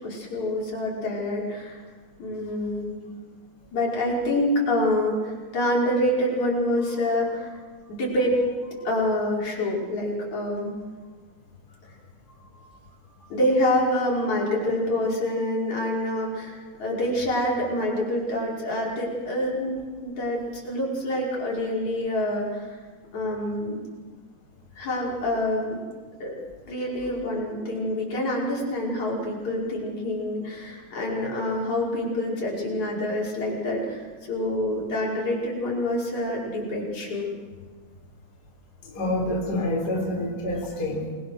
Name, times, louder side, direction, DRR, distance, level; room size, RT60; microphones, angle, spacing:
voice 1, 0.0-1.8 2.2-3.2 3.7-7.6 7.9-10.8 12.4-12.8 13.2-19.7 20.0-22.8 23.1-23.8 24.8-25.8 26.2-26.3 26.7-37.3, left 1 dB, 50° left, -4 dB, 6.5 m, -26 dB
voice 2, 38.9-41.1, left 1 dB, 25° left, -1 dB, 4.1 m, -27 dB
28.0 x 21.5 x 6.5 m, 1.5 s
omnidirectional pair, 4.2 m